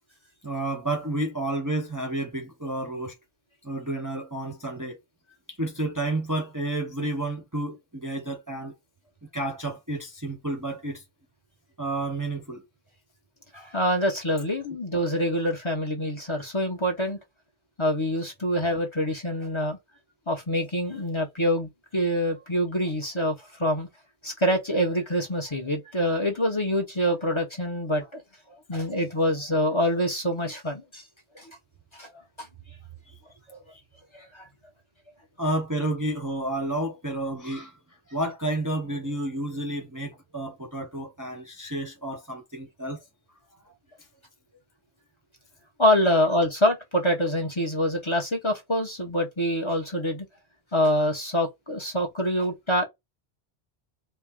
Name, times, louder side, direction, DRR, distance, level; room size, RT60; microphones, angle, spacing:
voice 1, 0.4-3.2 3.6-5.0 5.5-8.7 9.3-11.0 11.8-12.7 14.7-14.8 33.1-33.2 33.7-33.8 35.4-37.8 38.1-43.1 43.6-43.7, right 2 dB, 20° right, 0.7 m, -31 dB
voice 2, 13.5-17.2 17.8-19.8 20.3-23.9 24.2-28.2 28.7-31.0 31.3-31.6 31.9-32.1 32.4-32.5 34.1-34.5 45.8-50.3 50.7-52.9, equal, 30° left, 0.9 m, -25 dB
4.4 x 2.0 x 3.6 m
omnidirectional pair, 1.1 m